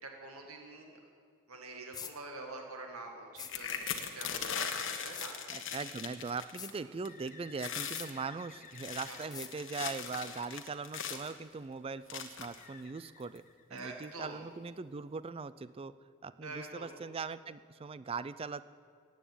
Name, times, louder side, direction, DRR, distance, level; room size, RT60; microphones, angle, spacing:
voice 1, 0.0-1.0 1.5-5.4 9.1-9.4 13.7-14.4 16.4-16.9, right 3 dB, 90° right, 2 dB, 1.9 m, -46 dB
sound 1, 1.9-2.1 3.4-3.5 5.1-5.3 6.6-6.7 7.9-8.1 9.3-9.5, left 7 dB, 20° left, 0.6 m, -44 dB
sound 2, 3.4-6.8 7.1-7.3 7.6-8.1 8.6-11.3 12.1-12.6 13.4-13.5 13.8-14.0, left 7 dB, 60° left, 1.3 m, -39 dB
voice 2, 5.5-13.4 13.7-16.0 16.2-18.7, right 4 dB, 25° right, 15 dB, 0.3 m, -40 dB
Bird, 7.0-10.8 12.5-14.3, left 6 dB, 35° left, 0.9 m, -56 dB
15.0 x 9.1 x 9.1 m, 2.2 s
head